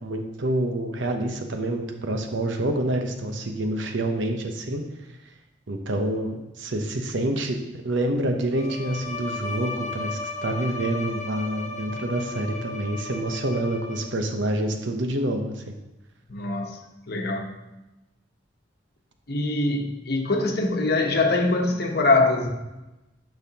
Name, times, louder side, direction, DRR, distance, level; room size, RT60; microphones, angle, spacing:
voice 1, 0.0-4.8 5.7-15.7, right 1 dB, 85° right, 5 dB, 0.9 m, -27 dB
Bowed string instrument, 8.5-14.3, left 3 dB, 40° left, 1.2 m, -35 dB
voice 2, 16.3-16.8 17.1-17.6 19.3-22.5, left 2 dB, 60° left, 3 dB, 1.0 m, -23 dB
10.5 x 5.6 x 2.9 m, 1.0 s
head